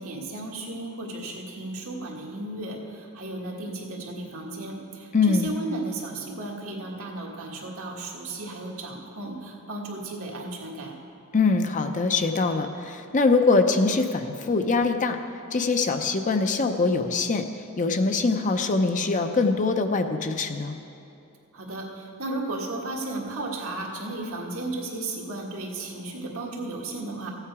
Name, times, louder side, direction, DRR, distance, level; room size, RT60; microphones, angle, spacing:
voice 1, 0.0-10.9 21.5-27.3, right 2 dB, 65° right, -1 dB, 1.7 m, -34 dB
voice 2, 5.1-5.5 11.3-15.2 15.5-17.4 17.8-20.8, left 3 dB, 35° left, 7 dB, 0.6 m, -23 dB
15.0 x 8.9 x 4.8 m, 2.6 s
head